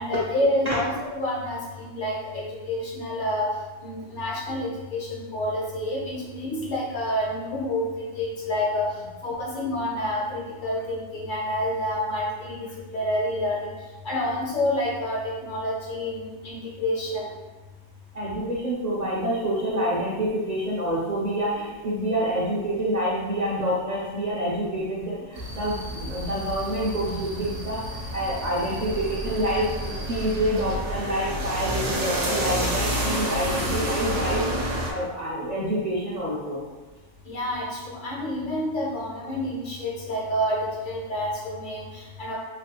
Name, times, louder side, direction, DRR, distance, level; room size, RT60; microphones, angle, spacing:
voice 1, 0.0-3.5 3.8-8.9 9.2-13.7 14.0-17.3 37.3-42.3, left 1 dB, 50° left, -3 dB, 0.7 m, -28 dB
voice 2, 18.1-34.4 34.9-36.7, right 1 dB, 50° right, -6 dB, 0.5 m, -27 dB
sound 1, 25.4-34.9, equal, 85° right, 1.1 m, -29 dB
3.2 x 2.3 x 2.9 m, 1.2 s
omnidirectional pair, 1.3 m